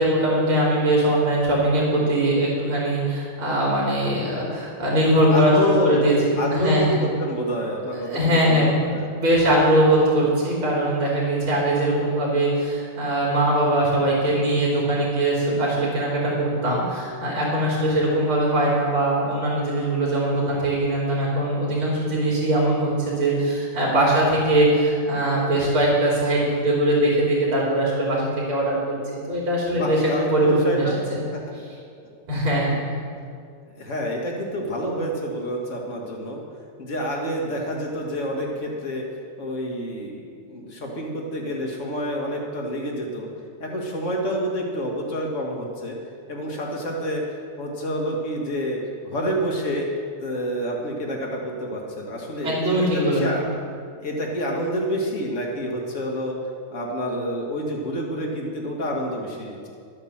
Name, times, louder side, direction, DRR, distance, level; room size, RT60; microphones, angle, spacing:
voice 1, 0.0-6.9 8.1-8.7 9.1-28.9 29.3-30.0 30.3-31.2 32.3-32.7 52.4-53.2, right 1 dB, 80° right, -5 dB, 4.0 m, -21 dB
voice 2, 5.3-6.0 6.4-9.1 29.7-31.0 31.3-31.4 33.1-33.2 33.7-36.4 36.8-39.0 39.4-43.3 43.6-46.0 46.3-47.2 47.6-49.9 50.2-53.5 54.0-56.4 56.7-59.7, equal, 35° left, 0 dB, 2.1 m, -28 dB
13.0 x 8.8 x 7.3 m, 2.3 s
omnidirectional pair, 2.3 m